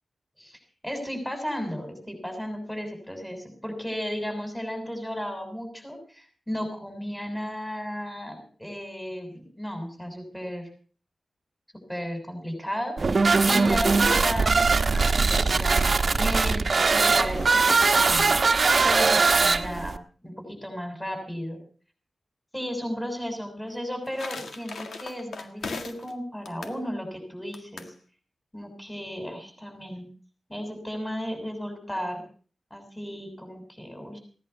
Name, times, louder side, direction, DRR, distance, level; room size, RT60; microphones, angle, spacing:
voice 1, 0.4-10.7 11.9-18.4 18.8-21.6 22.5-27.9 28.5-30.1 30.5-32.2 32.7-34.2, equal, 10° left, 5 dB, 7.0 m, -34 dB
sound 1, 13.0-20.0, right 4 dB, 55° right, 1.2 m, -21 dB
sound 2, 14.1-14.4 15.2-18.5 23.7-26.1 26.4-26.8 27.5-27.9, left 4 dB, 85° left, 1.8 m, -40 dB
17.5 x 10.5 x 6.9 m, 0.43 s
cardioid pair, 60°, 0 cm